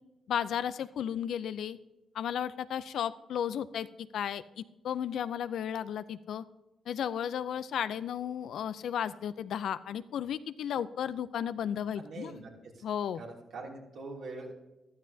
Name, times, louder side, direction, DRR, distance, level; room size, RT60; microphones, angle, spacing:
voice 1, 0.3-1.8 2.1-6.4 6.9-12.4 12.8-13.2, left 9 dB, 70° left, 14 dB, 0.5 m, -34 dB
voice 2, 11.9-12.9 13.1-14.6, right 3 dB, 70° right, -1 dB, 2.8 m, -44 dB
14.5 x 12.5 x 2.8 m, 1.1 s
supercardioid pair, 55°, 0 cm